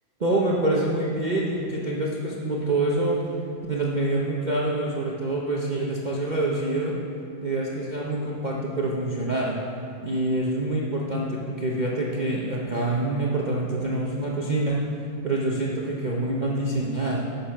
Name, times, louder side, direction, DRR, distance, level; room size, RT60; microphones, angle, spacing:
voice 1, 0.2-3.2 3.7-7.0 7.4-9.6 10.0-14.8 15.2-17.3, right 2 dB, 85° right, -4 dB, 0.4 m, -26 dB
11.0 x 6.8 x 5.8 m, 2.5 s
omnidirectional pair, 2.2 m